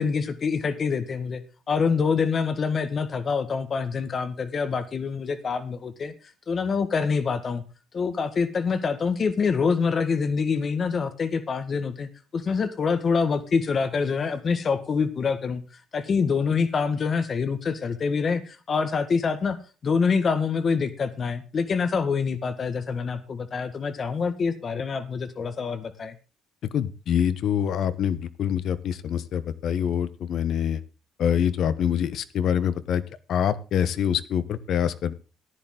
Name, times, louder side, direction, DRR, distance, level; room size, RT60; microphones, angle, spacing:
voice 1, 0.0-6.1 6.5-7.6 7.9-15.6 15.9-19.6 19.8-26.1, left 5 dB, 35° left, 10 dB, 1.6 m, -26 dB
voice 2, 26.7-30.8 31.2-33.0 33.3-35.1, left 9 dB, 55° left, 15 dB, 1.1 m, -25 dB
14.5 x 10.5 x 3.8 m, 0.32 s
cardioid pair, 145°, 0 cm